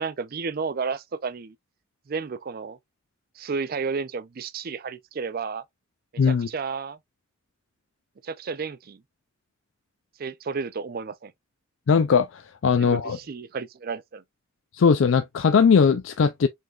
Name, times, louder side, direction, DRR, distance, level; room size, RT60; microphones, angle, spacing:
voice 1, 0.0-1.5 2.1-2.8 3.4-5.6 6.3-7.0 8.2-9.0 10.2-11.3 12.8-14.2, right 5 dB, 45° right, 0.4 m, -32 dB
voice 2, 6.2-6.5 11.9-13.2 14.7-16.5, left 6 dB, 70° left, 0.4 m, -19 dB
5.3 x 3.7 x 2.3 m
head